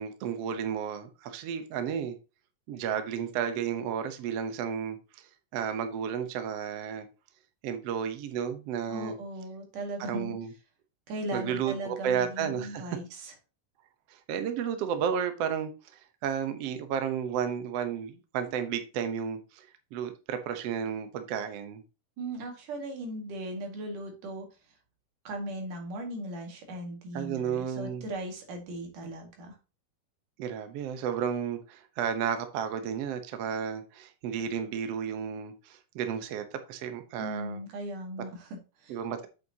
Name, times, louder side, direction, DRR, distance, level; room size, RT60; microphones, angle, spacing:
voice 1, 0.0-2.2 2.7-5.3 5.5-7.1 7.6-9.2 10.0-10.5 11.3-12.8 14.1-21.8 27.1-28.0 30.4-37.6 38.9-39.3, right 8 dB, 65° right, 1.7 m, -32 dB
voice 2, 8.9-10.4 11.1-13.3 22.2-24.5 25.3-29.6 37.2-39.0, right 1 dB, 80° right, 3.6 m, -38 dB
8.4 x 6.9 x 2.8 m
omnidirectional pair, 3.6 m